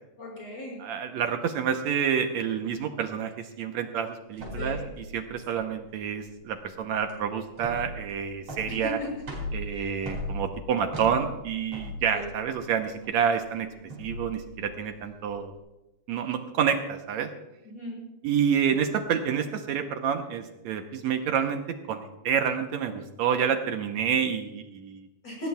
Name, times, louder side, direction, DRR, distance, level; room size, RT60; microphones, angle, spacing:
voice 1, 0.2-0.8 4.5-4.9 5.5-5.7 8.7-9.1 9.7-9.9 12.1-12.3 17.7-18.0 25.2-25.5, left 1 dB, 55° left, -2 dB, 7.5 m, -37 dB
voice 2, 0.8-9.0 9.5-15.5 16.1-17.3 18.2-21.6 21.9-25.1, right 7 dB, 70° right, 6 dB, 2.0 m, -28 dB
sound 1, 4.3-15.5, left 1 dB, 50° right, 5.6 m, -39 dB
19.0 x 17.0 x 2.3 m, 0.96 s
omnidirectional pair, 3.5 m